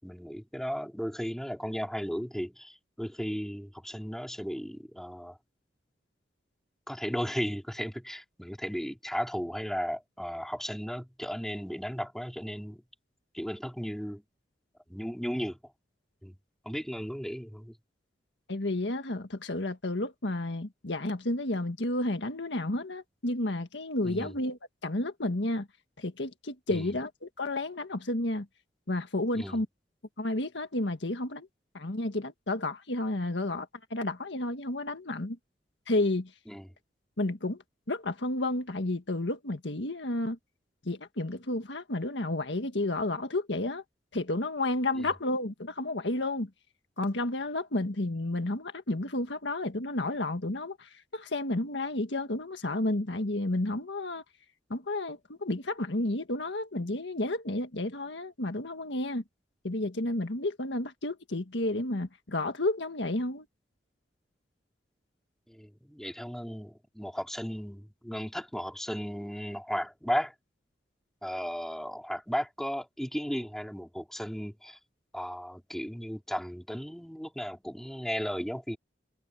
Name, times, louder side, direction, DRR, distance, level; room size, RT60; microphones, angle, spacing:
voice 1, 0.0-5.4 6.9-12.8 13.3-14.2 14.9-15.6 16.2-16.4 16.6-17.7 24.0-24.4 26.7-26.9 29.3-29.6 36.5-36.7 45.0-45.1 65.5-70.3 71.2-74.8 75.1-78.8, equal, ahead, 4.2 m, -35 dB
voice 2, 18.5-25.7 26.0-28.5 28.9-29.7 30.2-31.5 31.7-35.4 35.9-36.3 37.2-37.6 37.9-40.4 40.8-43.8 44.1-46.5 47.0-54.2 54.7-59.2 59.6-63.5, left 2 dB, 75° left, 1.7 m, -31 dB
head